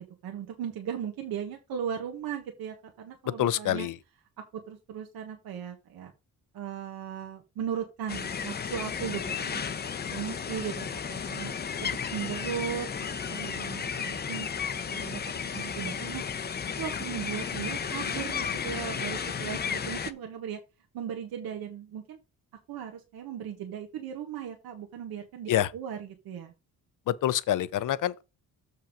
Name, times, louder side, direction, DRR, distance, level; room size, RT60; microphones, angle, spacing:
voice 1, 0.0-3.9 4.4-6.1 6.5-9.6 10.1-11.5 12.1-14.5 14.9-15.2 15.5-16.2 16.8-20.6 20.9-22.2 22.7-26.5, right 9 dB, 85° right, 1.5 m, -37 dB
voice 2, 3.4-3.9 25.5-25.7 27.1-28.2, left 12 dB, 60° left, 0.7 m, -26 dB
sound 1, 8.1-20.1, left 6 dB, 30° left, 0.6 m, -33 dB
7.2 x 5.4 x 5.1 m
cardioid pair, 145°, 35 cm